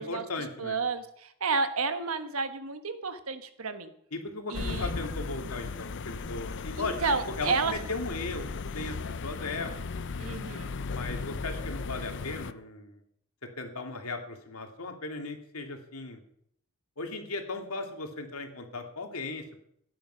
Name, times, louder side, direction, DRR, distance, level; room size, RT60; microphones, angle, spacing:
voice 1, 0.0-0.8 4.1-8.9 9.2-9.8 10.9-13.0 13.6-16.2 17.0-19.6, left 3 dB, 80° left, 4 dB, 2.3 m, -37 dB
voice 2, 0.6-3.9 4.5-4.9 6.8-7.7 10.2-10.7, right 4 dB, 75° right, 9 dB, 1.4 m, -31 dB
sound 1, 4.5-12.5, left 4 dB, 60° left, 0.6 m, -36 dB
16.0 x 10.5 x 5.6 m, 0.71 s
head